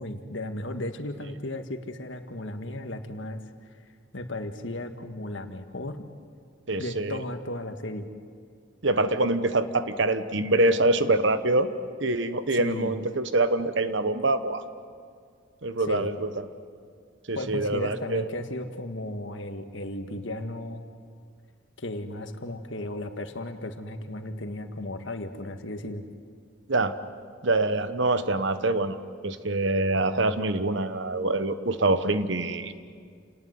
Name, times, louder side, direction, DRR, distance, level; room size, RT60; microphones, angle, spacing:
voice 1, 0.0-3.4 4.1-6.1 6.8-8.1 12.5-12.9 15.9-16.2 17.3-20.8 21.8-26.0, left 1 dB, 70° left, 7 dB, 1.7 m, -35 dB
voice 2, 6.7-7.2 8.8-11.7 12.0-14.6 15.6-16.4 17.3-18.2 26.7-27.0 27.4-29.0 29.2-32.7, right 2 dB, 65° right, 11 dB, 1.2 m, -25 dB
28.5 x 19.0 x 9.5 m, 2.1 s
head